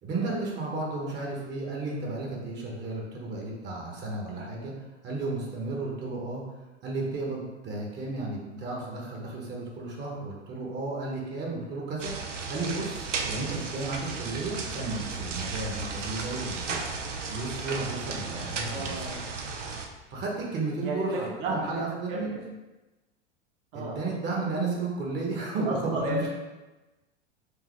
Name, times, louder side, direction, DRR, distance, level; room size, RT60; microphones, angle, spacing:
voice 1, 0.0-4.7 5.0-6.4 6.8-12.1 12.5-16.9 17.3-19.1 20.1-22.3 23.7-26.3, right 3 dB, 30° right, -2 dB, 1.1 m, -33 dB
sound 1, 12.0-19.9, right 4 dB, 85° right, 0.6 m, -35 dB
voice 2, 18.7-19.2 20.8-21.1 21.4-21.8 22.1-22.4 23.7-24.0 25.6-26.3, right 1 dB, 50° right, -3 dB, 1.3 m, -33 dB
4.7 x 2.8 x 3.2 m, 1.1 s
figure-of-eight pair, 90°, 36 cm